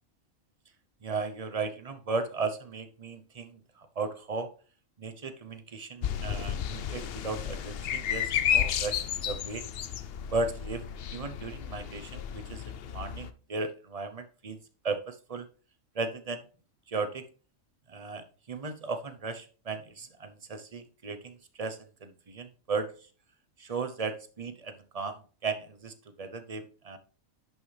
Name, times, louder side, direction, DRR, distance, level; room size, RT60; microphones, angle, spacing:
voice 1, 1.0-4.5 5.0-9.7 10.3-10.8 11.1-14.6 14.8-15.5 15.9-16.4 16.9-17.3 17.9-22.9 23.6-27.0, right 4 dB, 35° right, 9 dB, 0.8 m, -36 dB
sound 1, 6.0-13.3, left 9 dB, 60° left, 0.7 m, -32 dB
11.0 x 6.0 x 3.3 m, 0.38 s
omnidirectional pair, 1.4 m